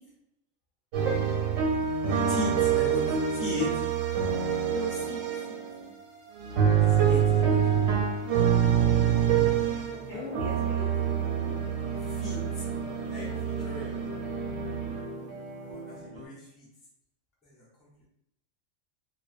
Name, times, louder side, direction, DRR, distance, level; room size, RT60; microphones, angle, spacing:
sound 1, 0.9-5.8 6.4-10.0 10.3-15.1, right 8 dB, 85° right, 1.0 m, -26 dB
voice 1, 2.3-3.9 6.8-7.8 12.1-12.6 13.1-14.0 15.6-16.7 17.4-17.9, left 2 dB, ahead, -8 dB, 0.4 m, -37 dB
voice 2, 4.7-5.2 5.5-5.9 10.1-10.9 16.1-16.3, left 1 dB, 55° left, -5 dB, 0.7 m, -39 dB
sound 2, 9.9-16.3, equal, 55° right, 0.5 m, -41 dB
2.3 x 2.2 x 2.4 m, 0.81 s
omnidirectional pair, 1.4 m